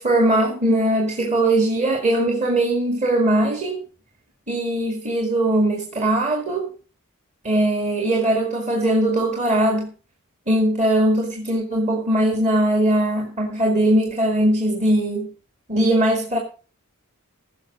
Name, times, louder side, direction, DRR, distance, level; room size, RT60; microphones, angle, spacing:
voice 1, 0.0-3.8 4.5-6.7 7.4-9.9 10.5-15.3 15.7-16.4, right 1 dB, 35° right, 2.2 m, -20 dB
15.5 x 6.5 x 6.1 m
head